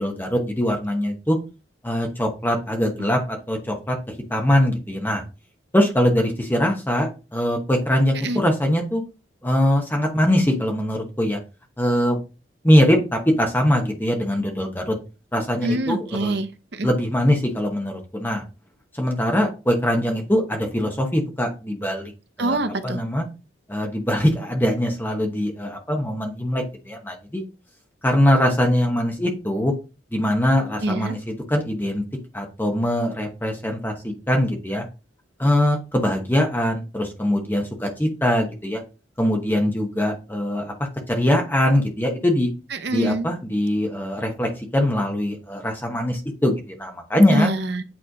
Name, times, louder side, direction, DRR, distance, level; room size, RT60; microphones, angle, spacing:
voice 1, 0.0-1.4 1.8-4.0 4.3-5.2 5.7-9.0 9.4-11.4 11.8-12.2 12.6-15.0 15.3-16.3 16.8-18.4 18.9-22.1 22.4-22.6 22.8-23.2 23.7-27.4 28.0-29.7 30.1-32.0 32.3-34.8 35.4-38.8 39.2-40.7 41.1-42.5 42.9-47.5, left 1 dB, 10° left, 2 dB, 1.0 m, -22 dB
voice 2, 15.6-16.9 22.4-23.0 30.8-31.2 42.7-43.3 47.3-47.8, right 1 dB, 60° right, 9 dB, 0.8 m, -25 dB
8.7 x 3.2 x 4.0 m, 0.30 s
head